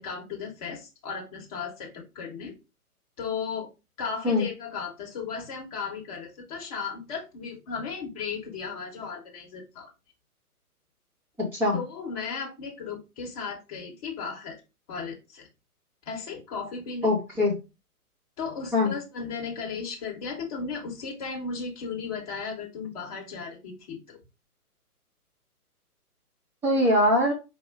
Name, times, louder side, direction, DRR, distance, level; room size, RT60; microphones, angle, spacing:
voice 1, 0.0-2.5 3.2-3.7 4.0-9.9 11.7-14.6 14.9-15.5 16.0-17.1 18.4-24.2, left 5 dB, 25° left, 0 dB, 1.2 m, -35 dB
voice 2, 17.0-17.5 18.7-18.9 26.6-27.3, left 1 dB, 5° right, -4 dB, 0.8 m, -22 dB
4.7 x 2.9 x 3.7 m, 0.26 s
figure-of-eight pair, 130°, 45 cm